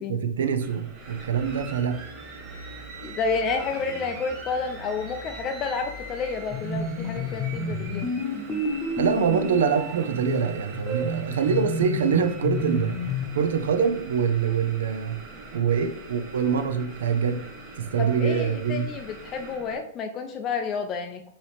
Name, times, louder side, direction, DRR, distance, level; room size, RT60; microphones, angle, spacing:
voice 1, 0.1-2.0 9.0-15.2 15.5-17.4 17.8-18.9, right 7 dB, 80° right, 9 dB, 0.6 m, -25 dB
sound 1, 0.6-19.8, right 2 dB, 35° right, 1.2 m, -42 dB
voice 2, 3.0-8.1 18.0-21.3, left 5 dB, 30° left, 5 dB, 0.4 m, -30 dB
sound 2, 6.5-13.4, left 2 dB, 15° left, 0.9 m, -30 dB
5.5 x 2.9 x 3.3 m, 0.67 s
hypercardioid pair, 135°, 0 cm